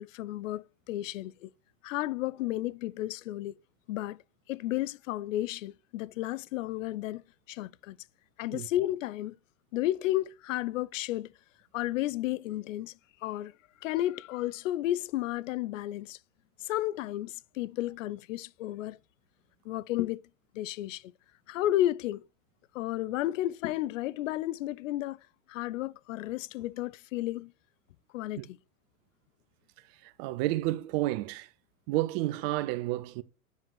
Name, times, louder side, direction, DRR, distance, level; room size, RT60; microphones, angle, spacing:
voice 1, 0.0-1.5 1.8-3.6 3.9-4.2 4.5-7.2 7.5-8.0 8.4-9.4 9.7-11.3 11.7-12.9 13.2-13.5 13.8-16.2 16.6-19.0 19.6-20.2 20.5-21.1 21.5-22.3 22.7-25.2 25.5-27.5 28.1-28.6, left 14 dB, 65° left, 0.5 m, -32 dB
voice 2, 30.0-31.5 31.9-33.2, right 17 dB, 45° right, 0.7 m, -30 dB
9.2 x 5.4 x 4.5 m
hypercardioid pair, 90°, 43 cm